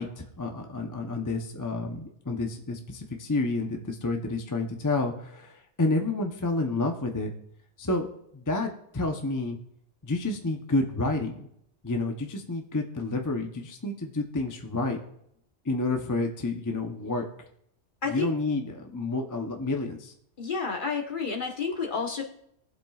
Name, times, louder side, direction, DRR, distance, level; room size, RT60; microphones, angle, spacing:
voice 1, 0.0-7.3 7.8-8.1 8.3-9.6 10.0-11.5 11.8-15.0 15.6-17.3 18.1-20.1, left 2 dB, 20° left, 3 dB, 0.8 m, -29 dB
voice 2, 20.4-22.2, left 5 dB, 45° left, 2 dB, 1.4 m, -30 dB
20.0 x 7.5 x 2.4 m, 0.74 s
omnidirectional pair, 1.2 m